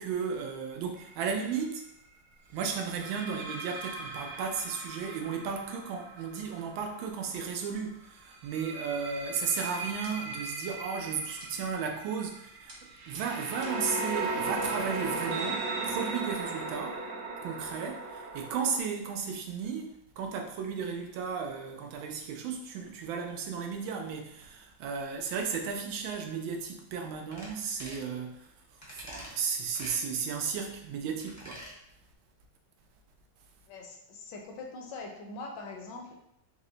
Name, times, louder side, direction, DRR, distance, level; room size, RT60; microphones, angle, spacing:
voice 1, 0.0-1.8 2.5-12.8 13.1-17.0 17.4-28.5 28.9-31.6, right 6 dB, 85° right, 3 dB, 1.4 m, -34 dB
sound 1, 1.0-1.3 2.8-7.5 8.3-18.8, right 3 dB, 70° right, 1.2 m, -37 dB
sound 2, 9.6-10.5 11.4-11.8 12.7-14.0, right 1 dB, 30° right, 0.6 m, -53 dB
sound 3, 27.3-27.5 27.8-28.1 28.8-29.3 29.7-30.0 31.2-31.7 32.1-32.2, equal, 15° left, 0.6 m, -45 dB
voice 2, 33.7-36.2, left 3 dB, 75° left, 1 dB, 1.2 m, -42 dB
4.6 x 2.1 x 3.8 m, 0.76 s
omnidirectional pair, 2.1 m